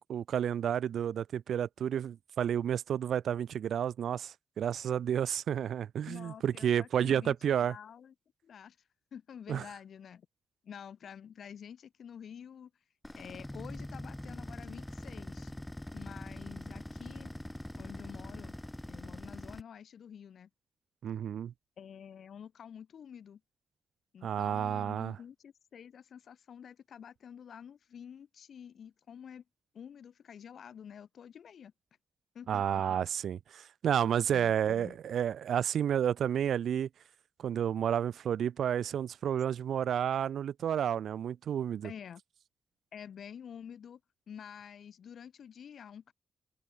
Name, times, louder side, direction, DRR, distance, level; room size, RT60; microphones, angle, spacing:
voice 1, 0.0-7.7 9.5-9.6 21.0-21.5 24.2-25.2 32.5-36.9 37.4-41.9, right 9 dB, 80° right, 0.5 m, -31 dB
voice 2, 6.1-8.1 8.4-10.3 10.6-12.7 13.1-15.5 15.9-17.3 17.8-18.6 18.9-20.5 21.8-23.4 24.1-29.4 29.7-31.7 32.3-33.0 34.3-35.0 41.8-42.2 42.9-44.0 44.3-46.1, left 8 dB, 70° left, 5.9 m, -49 dB
sound 1, 13.0-19.6, left 1 dB, 10° left, 2.8 m, -43 dB
cardioid pair, 95°, 0 cm